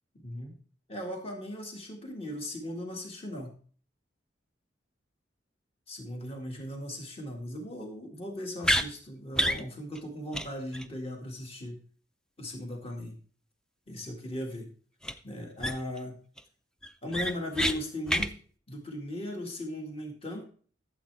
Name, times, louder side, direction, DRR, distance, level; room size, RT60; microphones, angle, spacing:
voice 1, 0.2-0.6 0.9-3.5 5.9-11.8 12.4-13.2 13.9-14.7 15.2-16.2 17.0-18.3 18.7-20.4, left 1 dB, 30° left, 2 dB, 1.9 m, -38 dB
sound 1, 8.6-8.9 9.3-9.6 10.0-10.1 10.3-10.5 10.7-10.9 15.0-15.1 15.6-16.0 16.4-16.5 16.8-17.7 18.1-18.3, equal, 5° left, 0.4 m, -27 dB
12.5 x 7.6 x 3.4 m, 0.43 s
head